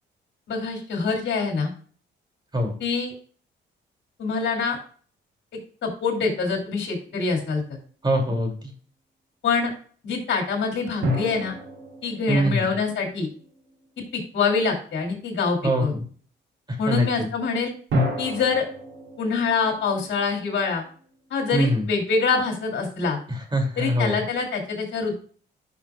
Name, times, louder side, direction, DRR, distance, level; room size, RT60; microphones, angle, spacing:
voice 1, 0.5-1.7 2.8-3.1 4.2-4.8 5.8-7.6 9.4-9.7 10.0-11.5 12.0-13.3 14.1-15.9 16.8-17.7 18.2-18.6 19.2-20.8 21.3-23.2 23.8-25.2, left 4 dB, 65° left, 1 dB, 2.7 m, -25 dB
sound 1, 7.0-7.4 11.0-13.8 17.9-21.1, left 1 dB, 85° right, 3.5 m, -31 dB
voice 2, 8.0-8.6 12.3-12.7 15.6-16.0 16.9-17.3 21.5-21.9 23.3-24.2, equal, 20° right, 2 dB, 2.6 m, -23 dB
11.5 x 5.6 x 2.4 m, 0.43 s
cardioid pair, 90°, 20 cm